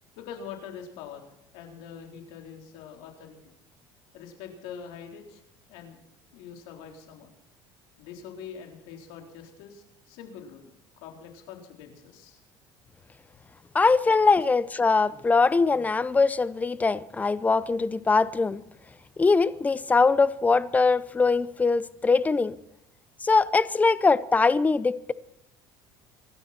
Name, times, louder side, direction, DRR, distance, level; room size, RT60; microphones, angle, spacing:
voice 1, 0.2-3.5 4.1-5.4 5.7-6.0 6.3-7.3 8.0-10.7 11.0-12.4, left 7 dB, 80° left, 4.1 m, -44 dB
voice 2, 13.7-18.6 19.2-22.6 23.2-25.1, left 4 dB, 15° left, 0.8 m, -22 dB
25.5 x 12.0 x 4.4 m
cardioid pair, 115°, 9 cm